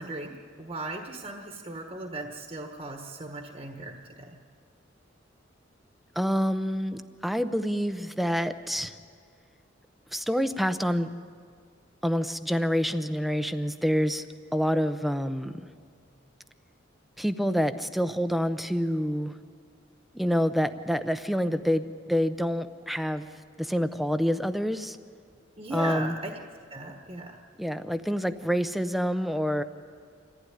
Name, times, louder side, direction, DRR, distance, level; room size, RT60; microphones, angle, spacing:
voice 1, 0.0-4.4 25.6-26.4 26.7-27.4, right 2 dB, 30° right, 3 dB, 1.3 m, -37 dB
voice 2, 6.2-8.9 10.1-11.1 12.0-14.2 14.5-15.5 17.2-19.3 20.1-23.3 23.6-25.0 25.7-26.1 27.6-29.6, equal, ahead, 10 dB, 0.7 m, -27 dB
26.5 x 15.0 x 9.9 m, 2.1 s
head